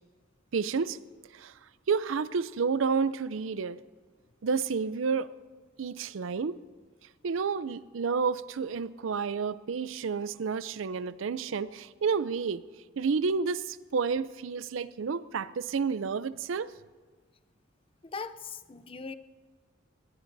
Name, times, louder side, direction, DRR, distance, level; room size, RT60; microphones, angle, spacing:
voice 1, 0.5-1.0 1.3-1.5 1.9-3.8 4.4-5.3 5.8-6.6 7.2-12.6 13.0-16.7, right 5 dB, 75° right, 16 dB, 0.5 m, -30 dB
voice 2, 18.0-19.1, left 5 dB, 25° left, 12 dB, 0.5 m, -40 dB
21.0 x 19.5 x 2.7 m, 1.5 s
head